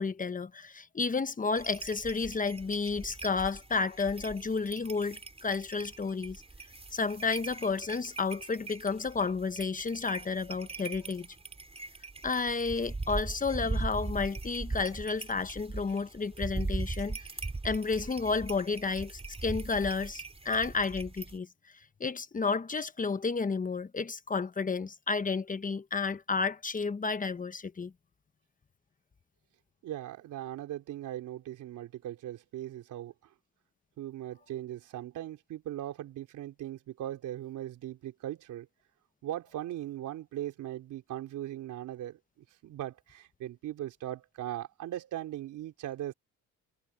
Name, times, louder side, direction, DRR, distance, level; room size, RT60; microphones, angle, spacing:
voice 1, 0.0-6.4 6.9-11.3 12.2-17.2 17.6-21.5 22.0-27.9, left 4 dB, 25° left, 1.1 m, -31 dB
sound 1, 1.6-21.4, right 3 dB, 20° right, 4.8 m, -40 dB
voice 2, 29.8-33.1 34.0-38.7 39.2-42.2 42.6-46.1, right 13 dB, 85° right, 3.9 m, -39 dB
cardioid pair, 90°, 30 cm